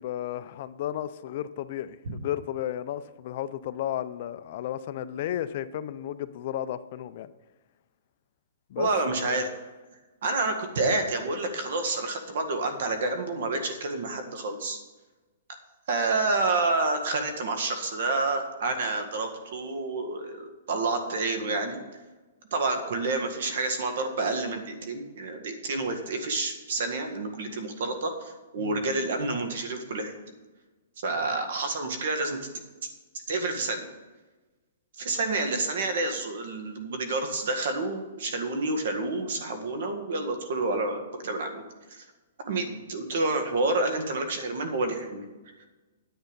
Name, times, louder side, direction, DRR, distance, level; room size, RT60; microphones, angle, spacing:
voice 1, 0.0-7.3 8.7-8.9 9.3-9.4 28.6-28.9, left 11 dB, 45° left, 13 dB, 0.5 m, -33 dB
voice 2, 8.8-9.5 10.2-14.8 15.9-21.8 22.5-30.1 31.0-32.4 33.3-33.9 35.0-41.6 41.9-42.0 42.5-45.2, right 3 dB, 65° right, 6 dB, 1.8 m, -29 dB
10.0 x 8.2 x 5.3 m, 1.2 s
hypercardioid pair, 165°, 0 cm